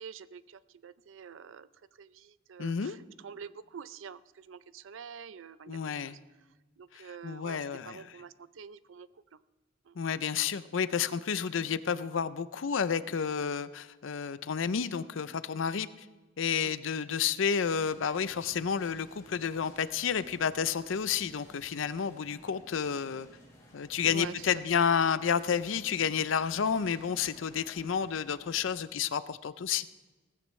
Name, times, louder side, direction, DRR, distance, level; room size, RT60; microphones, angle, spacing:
voice 1, 0.0-6.2 6.8-9.4 9.8-10.0 16.6-16.7 24.0-24.8, right 6 dB, 80° right, 16 dB, 0.5 m, -47 dB
voice 2, 2.6-3.0 5.7-6.2 6.9-8.1 10.0-15.9 16.4-23.3 23.7-29.9, left 7 dB, 80° left, 15 dB, 0.5 m, -30 dB
sound 1, 17.6-28.7, equal, 20° left, 4.1 m, -56 dB
17.5 x 15.0 x 3.2 m, 1.2 s
head